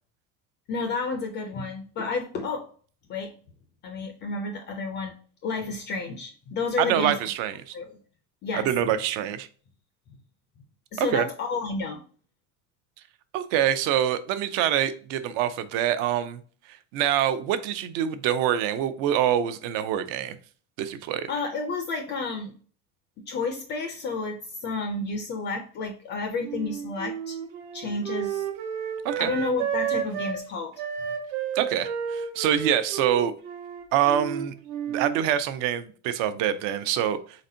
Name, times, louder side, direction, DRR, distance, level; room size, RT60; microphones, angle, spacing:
voice 1, 0.7-2.7 3.1-3.3 3.8-5.2 5.4-7.1 7.7-7.9 8.4-8.7 10.9-12.0 21.3-22.5 23.2-27.4 27.7-28.5 29.2-30.7, left 4 dB, 30° left, 5 dB, 0.4 m, -31 dB
voice 2, 6.8-7.8 8.5-9.5 11.0-11.2 13.3-16.4 16.9-20.4 20.8-21.3 29.0-29.3 31.5-33.3 33.9-34.5 34.9-37.5, right 10 dB, 55° right, 12 dB, 0.5 m, -25 dB
Wind instrument woodwind instrument, 26.4-30.4 30.8-35.2, right 8 dB, 75° right, 1.0 m, -31 dB
4.2 x 4.0 x 2.6 m, 0.41 s
cardioid pair, 175°, 38 cm